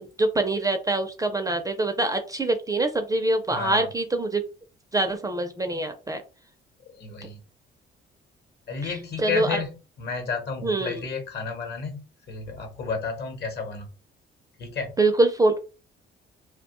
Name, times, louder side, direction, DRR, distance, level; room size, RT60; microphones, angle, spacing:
voice 1, 0.0-4.4 4.9-6.2 8.8-8.9 9.2-9.6 10.6-11.0 15.0-15.6, right 2 dB, 15° right, 6 dB, 0.4 m, -24 dB
voice 2, 3.5-3.9 6.9-7.4 8.7-9.7 10.0-13.9 14.6-14.9, left 4 dB, 55° left, 5 dB, 1.0 m, -31 dB
2.5 x 2.1 x 3.0 m, 0.33 s
cardioid pair, 90°, 20 cm